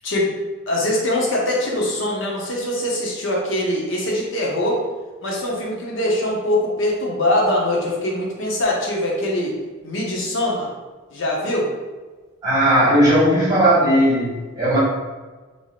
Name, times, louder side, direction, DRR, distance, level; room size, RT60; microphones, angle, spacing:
voice 1, 0.7-4.8 5.2-9.5 9.8-10.7 11.1-11.7, left 1 dB, 65° left, -2 dB, 0.6 m, -22 dB
voice 2, 12.4-14.8, equal, 20° right, -8 dB, 1.2 m, -17 dB
3.3 x 2.6 x 2.3 m, 1.3 s
head